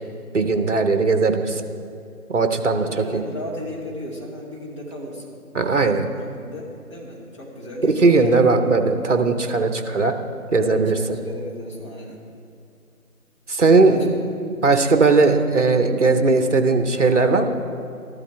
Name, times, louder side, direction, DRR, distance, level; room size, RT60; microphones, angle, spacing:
voice 1, 0.3-1.6 2.3-3.2 5.5-6.1 8.0-10.1 10.5-11.0 13.5-14.1 14.4-17.5, right 3 dB, 50° right, 7 dB, 1.0 m, -18 dB
voice 2, 2.8-5.4 5.8-6.1 6.3-8.3 10.6-12.2 13.8-14.3 14.7-15.5, left 1 dB, 20° left, -5 dB, 1.4 m, -35 dB
14.0 x 12.0 x 3.5 m, 2.5 s
figure-of-eight pair, 160°, 46 cm